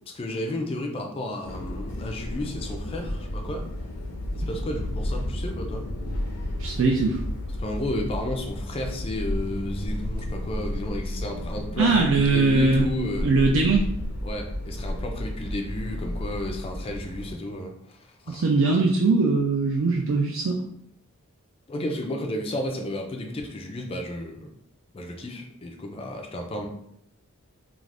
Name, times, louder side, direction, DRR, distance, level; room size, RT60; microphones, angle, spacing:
voice 1, 0.1-3.7 4.3-5.9 7.6-13.3 14.2-18.0 18.2-18.4 18.7-18.8 21.7-24.5 24.9-26.7, left 1 dB, 25° left, 3 dB, 0.3 m, -32 dB
sound 1, 1.4-17.4, left 1 dB, 80° left, 0.6 m, -32 dB
voice 2, 6.6-7.2 11.8-12.9 13.2-13.8 18.3-20.6, right 3 dB, 60° right, 0 dB, 0.3 m, -21 dB
2.4 x 2.4 x 3.3 m, 0.71 s
head